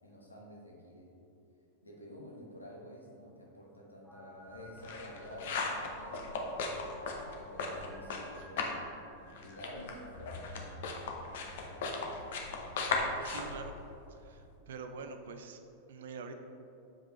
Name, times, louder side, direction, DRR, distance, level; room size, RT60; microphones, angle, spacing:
voice 1, 0.0-1.1 1.8-6.7 7.4-8.7 9.3-10.8 11.2-12.7, equal, 80° left, -3 dB, 1.2 m, -50 dB
sound 1, 4.0-11.3, equal, ahead, 0.6 m, -55 dB
sound 2, 4.5-8.9 9.1-14.5, left 3 dB, 55° left, 0.8 m, -37 dB
voice 2, 13.2-13.7 14.1-15.6 15.9-16.4, right 5 dB, 60° right, 7 dB, 0.5 m, -45 dB
7.3 x 5.1 x 3.1 m, 2.7 s
figure-of-eight pair, 90°, 0 cm